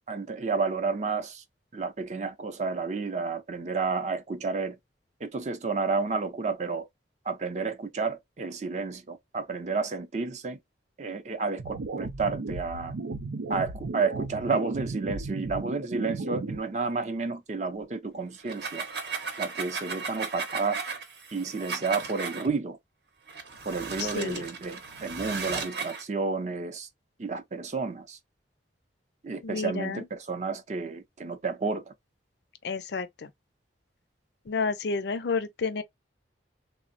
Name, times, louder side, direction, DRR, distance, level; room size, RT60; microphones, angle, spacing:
voice 1, 0.1-1.4 1.7-4.8 5.2-6.9 7.3-10.6 11.0-12.9 13.5-18.9 19.4-20.8 21.3-22.8 23.7-26.9 27.2-28.2 29.2-31.9, right 4 dB, 40° right, 0.5 m, -31 dB
sound 1, 11.6-16.6, right 3 dB, 85° right, 0.5 m, -34 dB
sound 2, 18.4-22.5 23.3-26.0, right 5 dB, 60° right, 0.8 m, -36 dB
voice 2, 24.0-24.4 29.4-30.0 32.6-33.3 34.5-35.8, left 4 dB, 65° left, 0.4 m, -30 dB
3.4 x 2.0 x 2.4 m
head